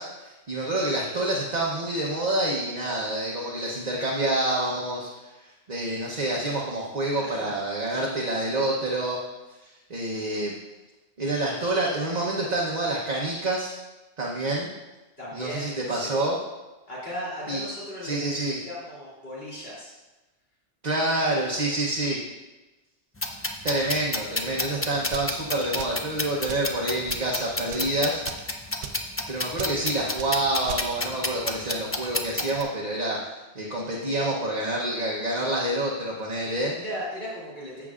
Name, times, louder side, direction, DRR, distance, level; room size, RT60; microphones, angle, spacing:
voice 1, 0.0-5.1 5.7-9.2 9.6-10.5 11.2-13.7 14.2-14.7 15.3-16.4 17.5-17.6 18.0-18.6 20.8-22.2 23.6-28.6 29.3-33.3 33.5-36.7, right 1 dB, 40° right, -3 dB, 1.0 m, -27 dB
voice 2, 7.2-7.5 15.2-16.3 16.9-18.4 18.6-19.9 36.8-37.9, equal, 55° left, -8 dB, 3.3 m, -36 dB
sound 1, 23.2-32.6, left 2 dB, 20° left, 0.3 m, -31 dB
sound 2, 25.1-25.3 25.8-26.1 26.5-26.7 27.1-27.3 27.6-27.9 28.3-28.5 28.8-29.0 29.6-29.8 30.2-30.3 30.7-30.9, right 6 dB, 70° right, 0.9 m, -38 dB
14.5 x 6.0 x 2.5 m, 1.1 s
omnidirectional pair, 1.2 m